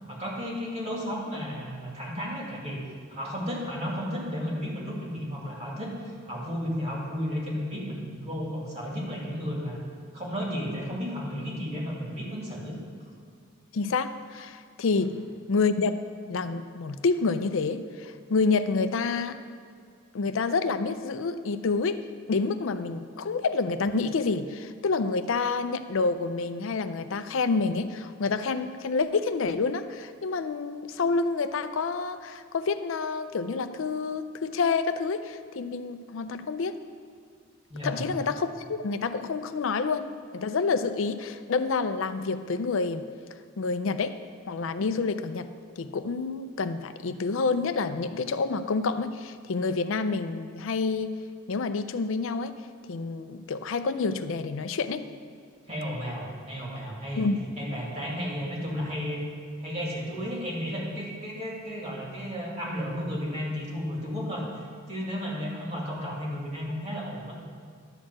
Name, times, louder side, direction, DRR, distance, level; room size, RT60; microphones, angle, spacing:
voice 1, 0.0-2.8 3.1-9.8 10.1-12.8 15.0-15.1 37.7-38.1 55.7-57.3 57.6-59.2 59.6-67.3, equal, 30° right, -4 dB, 2.3 m, -33 dB
voice 2, 13.7-15.2 15.5-15.9 16.3-19.4 20.1-22.0 22.3-36.8 37.8-43.0 43.6-44.2 44.5-45.5 45.8-51.1 51.5-52.6 52.9-55.1 57.2-57.4, left 4 dB, 70° left, 10 dB, 0.5 m, -28 dB
11.5 x 4.6 x 7.5 m, 2.1 s
head